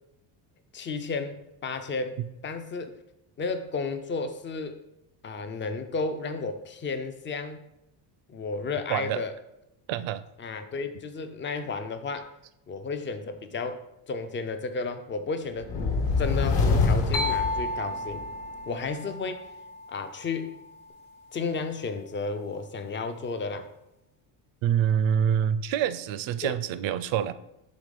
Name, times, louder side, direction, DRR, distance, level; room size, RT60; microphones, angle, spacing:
voice 1, 0.7-2.9 3.4-4.8 5.2-7.6 8.3-9.3 10.4-12.3 12.7-15.7 16.2-18.2 18.7-19.5 19.9-20.6 21.3-23.7 26.4-26.5, left 4 dB, 25° left, 9 dB, 0.3 m, -33 dB
voice 2, 8.9-9.2 9.9-10.2 24.6-27.3, right 9 dB, 65° right, 13 dB, 0.5 m, -26 dB
sound 1, 15.6-18.3, left 4 dB, 55° left, 1.1 m, -25 dB
sound 2, 17.1-20.8, left 2 dB, 80° left, 1.1 m, -33 dB
5.0 x 3.6 x 5.2 m, 0.87 s
cardioid pair, 130°, 50 cm